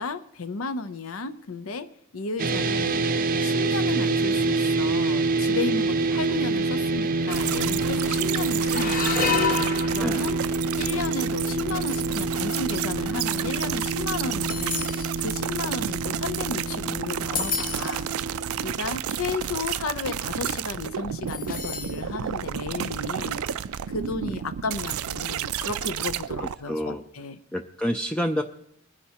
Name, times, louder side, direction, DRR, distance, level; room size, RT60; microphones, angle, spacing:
voice 1, 0.0-1.9 2.1-3.0 3.4-9.4 9.9-10.4 10.8-14.9 15.2-18.1 18.6-23.4 23.9-27.4, left 4 dB, 70° left, 12 dB, 0.6 m, -33 dB
sound 1, 2.4-18.7, right 3 dB, 40° right, 0.6 m, -27 dB
sound 2, 5.3-5.7 6.0-6.2 7.0-7.1 7.3-7.8 8.5-10.7 11.4-11.6 12.4-16.8 17.1-18.1 18.8-18.9 19.2-19.5 21.3-22.1 22.4-22.5 23.8-23.9, left 5 dB, 40° left, 0.9 m, -32 dB
sound 3, 7.3-26.6, right 9 dB, 85° right, 0.4 m, -31 dB
voice 2, 26.4-27.0 27.5-28.4, equal, 5° left, 5 dB, 0.3 m, -28 dB
20.5 x 9.8 x 2.9 m, 0.75 s
head